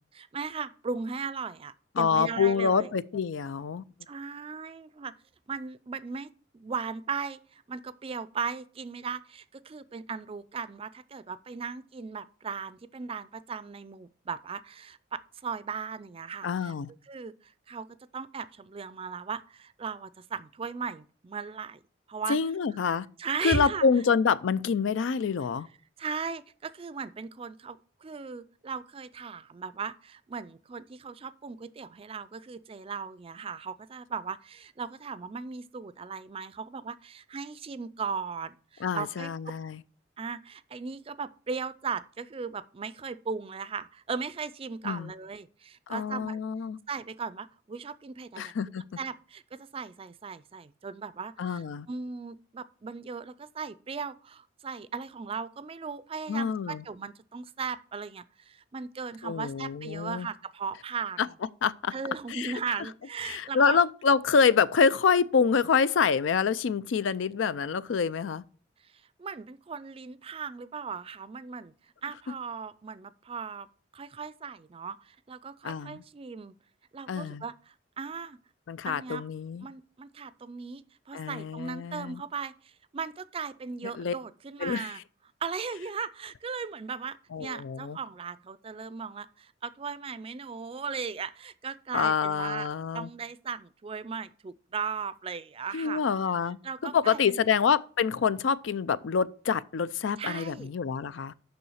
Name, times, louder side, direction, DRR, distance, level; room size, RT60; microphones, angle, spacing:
voice 1, 0.1-2.9 4.1-5.1 5.5-16.7 17.1-17.9 18.1-21.8 22.1-22.4 23.2-23.8 26.0-39.3 40.2-46.4 46.9-48.5 49.0-61.3 61.9-63.8 69.2-71.7 72.0-73.7 73.9-76.5 76.9-78.4 78.9-79.2 79.6-85.0 85.4-96.0 96.6-97.4 100.2-100.7, right 5 dB, 30° right, 0.4 m, -37 dB
voice 2, 2.0-3.8 16.4-16.9 22.3-23.1 23.4-25.7 38.8-39.8 44.8-45.1 45.9-46.8 48.4-48.8 51.4-51.9 56.3-56.8 59.2-60.3 61.2-61.3 61.6-61.9 62.3-62.5 63.2-68.4 75.6-76.0 77.1-77.4 78.7-79.7 81.1-82.2 84.0-84.1 84.6-84.9 87.3-88.0 91.9-93.1 95.7-96.6 96.8-101.3, left 6 dB, 80° left, 0.4 m, -26 dB
6.9 x 5.5 x 6.3 m
head